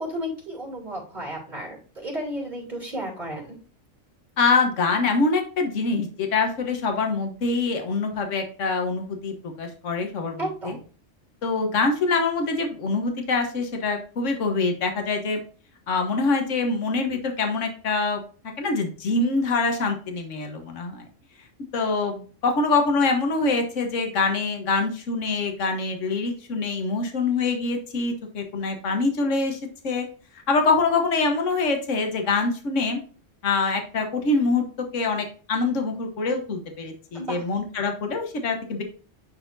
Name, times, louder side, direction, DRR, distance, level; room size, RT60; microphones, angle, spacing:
voice 1, 0.0-3.6 10.4-10.8 37.1-37.4, equal, 35° right, -2 dB, 3.2 m, -33 dB
voice 2, 4.4-10.8 11.4-15.4 15.9-18.2 18.6-21.0 21.7-29.6 29.8-30.0 30.5-33.0 33.4-34.6 34.9-38.8, left 3 dB, 70° left, 4 dB, 1.6 m, -24 dB
10.5 x 4.2 x 2.6 m, 0.39 s
omnidirectional pair, 1.4 m